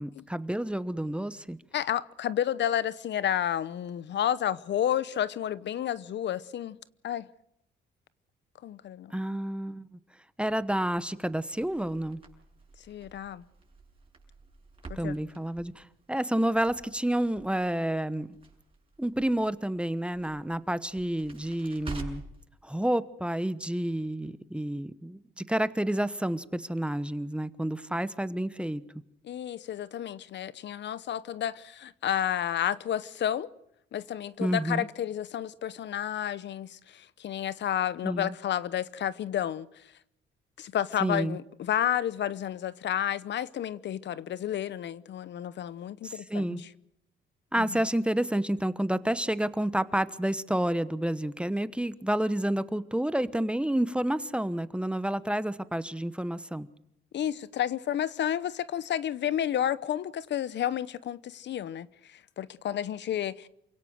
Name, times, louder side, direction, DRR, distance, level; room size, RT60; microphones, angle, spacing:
voice 1, 0.0-1.6 9.1-9.9 10.4-12.2 15.0-18.3 19.0-22.2 22.6-28.8 34.4-34.9 38.0-38.3 41.0-41.4 46.0-46.6 47.5-56.7, right 1 dB, 5° right, 1.1 m, -29 dB
voice 2, 1.7-6.8 7.0-7.3 8.6-9.1 12.9-13.4 14.9-15.2 29.2-33.5 33.9-39.7 40.6-46.7 47.6-47.7 57.1-63.5, left 10 dB, 65° left, 0.9 m, -31 dB
Crackle, 11.5-22.4, right 3 dB, 30° right, 7.0 m, -48 dB
28.0 x 17.0 x 6.5 m
cardioid pair, 90°, 20 cm